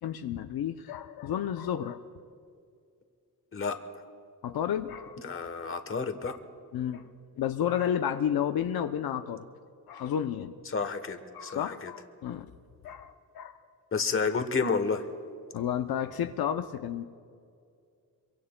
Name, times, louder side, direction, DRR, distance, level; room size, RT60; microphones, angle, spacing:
voice 1, 0.0-2.0 4.4-5.2 6.7-7.0 7.4-9.4 9.9-10.5 11.3-12.5 12.8-13.6 15.5-17.0, left 9 dB, 85° left, 8 dB, 0.6 m, -31 dB
voice 2, 5.2-6.3 10.7-11.9 13.9-15.1, left 4 dB, 35° left, 8 dB, 1.1 m, -30 dB
26.5 x 23.5 x 2.2 m, 2.3 s
wide cardioid pair, 130°, 36 cm